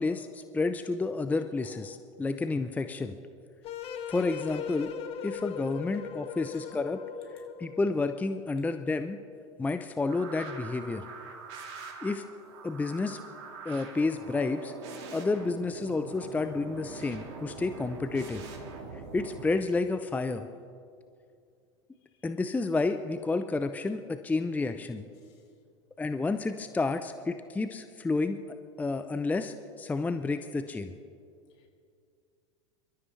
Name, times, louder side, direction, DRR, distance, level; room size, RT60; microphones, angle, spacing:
voice 1, 0.0-3.2 4.1-4.9 5.2-7.0 7.6-9.2 9.6-11.0 12.0-12.2 12.6-13.2 13.6-14.7 15.1-18.4 19.1-20.4 22.2-25.0 26.0-28.4 28.8-30.9, left 3 dB, 10° left, 9 dB, 0.5 m, -30 dB
sound 1, 3.6-8.0, left 7 dB, 40° left, 1.2 m, -39 dB
voice 2, 6.4-6.7 22.1-22.2 25.2-25.4 31.6-31.7, left 6 dB, 60° left, 1 dB, 2.9 m, -60 dB
sound 2, 10.1-19.4, right 4 dB, 55° right, 2.4 m, -43 dB
26.5 x 13.0 x 3.2 m, 2.4 s
figure-of-eight pair, 85°, 16 cm